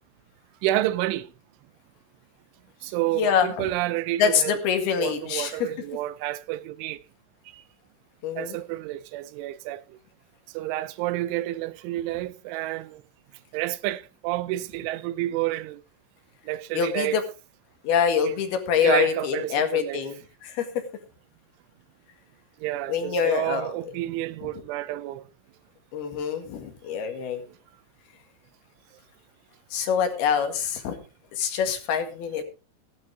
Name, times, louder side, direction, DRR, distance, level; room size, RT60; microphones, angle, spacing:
voice 1, 0.6-1.3 2.8-4.6 5.0-7.0 8.4-10.0 10.5-13.0 13.5-15.8 16.5-17.2 18.2-18.4 18.8-20.0 22.6-25.2, right 15 dB, 85° right, 3.2 m, -29 dB
voice 2, 3.2-3.7 4.2-5.7 8.2-8.6 16.7-17.2 17.8-20.8 22.9-23.7 24.4-24.5 25.9-27.4 29.7-31.0 31.3-32.4, left 7 dB, 60° left, 3.5 m, -25 dB
15.0 x 12.5 x 3.5 m
omnidirectional pair, 5.5 m